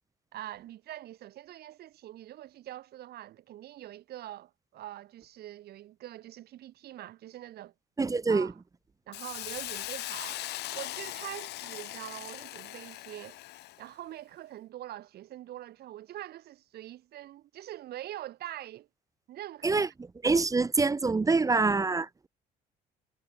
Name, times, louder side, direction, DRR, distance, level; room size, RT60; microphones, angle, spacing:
voice 1, 0.3-7.7 8.3-8.6 9.1-10.4 10.7-13.4 13.8-18.9 19.3-19.9, right 13 dB, 70° right, 6.5 m, -44 dB
voice 2, 8.0-8.5 19.6-19.9 20.2-22.1, right 4 dB, 20° right, 1.0 m, -25 dB
Hiss, 9.1-13.8, left 16 dB, 80° left, 3.2 m, -40 dB
cardioid pair, 110°, 17 cm